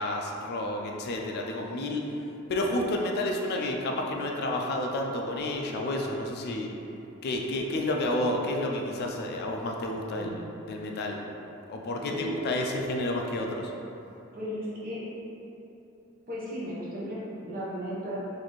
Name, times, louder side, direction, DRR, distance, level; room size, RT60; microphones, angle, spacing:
voice 1, 0.0-2.0 2.5-6.7 7.2-10.4 10.7-11.2 11.7-13.7, left 1 dB, 50° left, 1 dB, 0.3 m, -30 dB
voice 2, 12.0-12.4 14.3-15.1 16.3-18.2, equal, 45° right, -7 dB, 0.8 m, -35 dB
4.0 x 2.6 x 3.0 m, 2.9 s
head